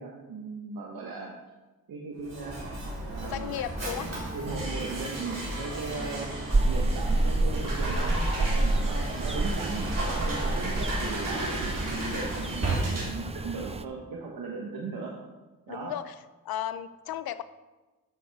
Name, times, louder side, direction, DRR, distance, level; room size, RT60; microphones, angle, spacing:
voice 1, 0.0-1.3 1.9-2.6 3.1-3.5 4.3-6.3 6.7-15.2 15.7-15.9, right 4 dB, 80° right, -1 dB, 1.3 m, -37 dB
Mechanisms, 2.2-13.3, right 1 dB, 45° right, 3.6 m, -35 dB
voice 2, 3.2-4.1 10.2-10.3 15.7-16.1 16.4-17.4, left 11 dB, 85° left, 14 dB, 0.6 m, -35 dB
sound 1, 4.5-13.1, right 1 dB, 60° right, 3.6 m, -37 dB
sound 2, 6.5-13.8, right 2 dB, 20° right, 0.5 m, -29 dB
13.0 x 7.2 x 3.5 m, 1.2 s
cardioid pair, 55°, 36 cm